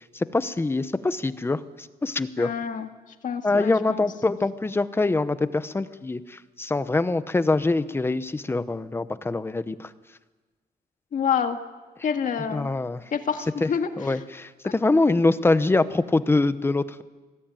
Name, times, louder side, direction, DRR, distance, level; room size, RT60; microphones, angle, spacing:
voice 1, 0.1-2.5 3.4-9.9 12.5-13.0 13.6-13.7 14.0-17.0, left 2 dB, 15° left, 13 dB, 0.8 m, -24 dB
voice 2, 2.4-2.9 3.2-4.0 11.1-11.6 12.0-12.7 13.1-14.2 14.6-14.7, left 7 dB, 55° left, 6 dB, 1.9 m, -28 dB
25.0 x 18.5 x 9.0 m, 1.3 s
wide cardioid pair, 160°, 16 cm